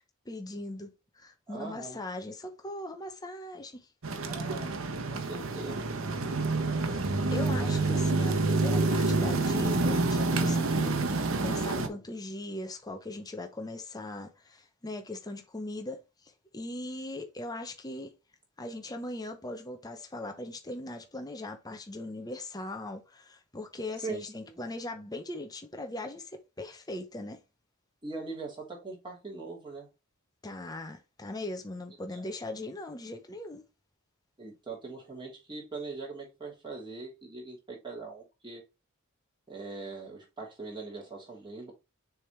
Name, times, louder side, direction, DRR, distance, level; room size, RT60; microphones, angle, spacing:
voice 1, 0.3-3.9 6.5-6.6 6.9-16.0 16.5-18.1 18.6-27.4 30.4-33.6, left 2 dB, 20° left, 0.8 m, -40 dB
voice 2, 1.5-2.0 4.2-4.7 5.1-5.9 11.7-12.0 24.0-24.6 28.0-29.9 32.1-32.2 34.4-38.6 39.5-41.7, right 3 dB, 20° right, 3.0 m, -41 dB
sound 1, 4.0-11.9, right 3 dB, 65° right, 1.0 m, -28 dB
6.8 x 3.5 x 4.4 m
head